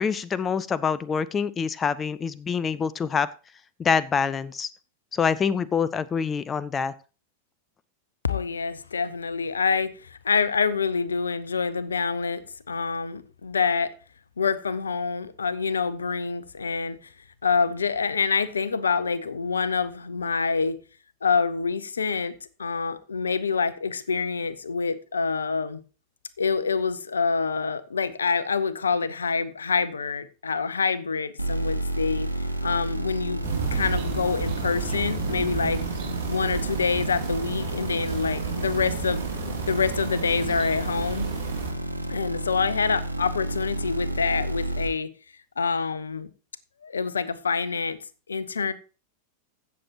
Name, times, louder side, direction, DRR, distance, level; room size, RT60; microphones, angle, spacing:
voice 1, 0.0-3.3 3.8-4.7 5.1-6.9, left 6 dB, 20° left, 0.4 m, -25 dB
voice 2, 8.2-13.9 14.4-17.1 17.4-20.8 21.2-25.8 26.4-32.3 32.6-33.4 33.7-35.8 36.3-39.2 39.7-41.3 42.1-45.1 45.6-46.3 46.8-48.0 48.3-48.7, left 5 dB, 75° left, 0.6 m, -26 dB
sound 1, 31.4-44.9, right 1 dB, 90° left, 1.0 m, -31 dB
sound 2, 33.4-41.7, right 6 dB, 40° right, 2.7 m, -32 dB
16.0 x 6.9 x 2.9 m
figure-of-eight pair, 90°, 0 cm